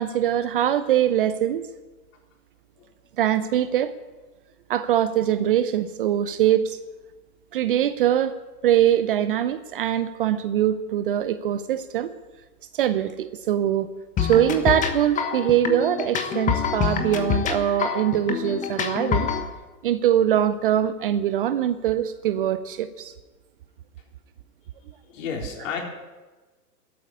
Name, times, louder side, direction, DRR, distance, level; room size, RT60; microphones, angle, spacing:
voice 1, 0.0-1.6 3.2-3.9 4.7-6.8 7.5-8.4 8.6-12.1 12.7-13.9 14.2-19.3 19.8-23.1, right 11 dB, 35° right, 15 dB, 0.6 m, -22 dB
sound 1, 14.2-19.4, left 7 dB, 15° left, 1.1 m, -26 dB
voice 2, 25.0-25.8, left 6 dB, 50° left, 0 dB, 4.2 m, -32 dB
12.5 x 8.8 x 9.6 m, 1.2 s
hypercardioid pair, 120°, 48 cm